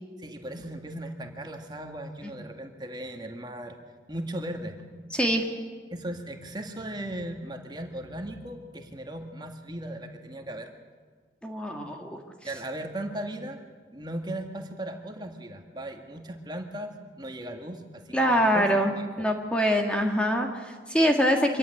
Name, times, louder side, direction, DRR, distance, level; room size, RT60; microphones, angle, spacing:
voice 1, 0.2-3.8 4.1-4.8 5.9-10.7 12.4-13.6 13.9-16.9 17.2-19.2, right 1 dB, 25° right, 4 dB, 1.9 m, -37 dB
voice 2, 5.1-5.4 11.4-12.2 18.1-21.6, equal, 5° left, 2 dB, 1.7 m, -24 dB
25.0 x 16.0 x 9.8 m, 1.5 s
head